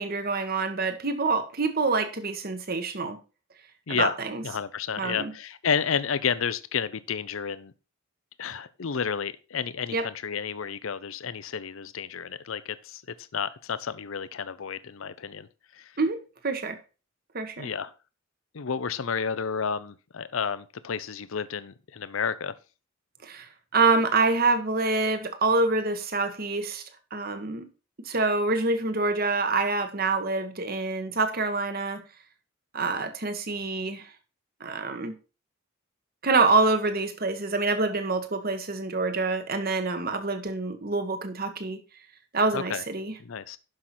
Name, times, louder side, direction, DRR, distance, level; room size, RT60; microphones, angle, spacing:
voice 1, 0.0-3.2 3.9-4.4 5.0-5.3 9.9-10.1 16.0-16.8 17.3-17.7 23.2-26.8 27.1-27.6 28.0-32.0 32.7-34.1 34.6-35.2 36.2-41.8 42.3-43.1, right 3 dB, 45° right, 1.4 m, -26 dB
voice 2, 4.4-7.7 8.4-13.0 13.3-15.9 17.6-17.9 18.5-22.5 42.5-42.8 43.2-43.6, left 6 dB, 75° left, 0.6 m, -31 dB
11.5 x 5.8 x 4.4 m
head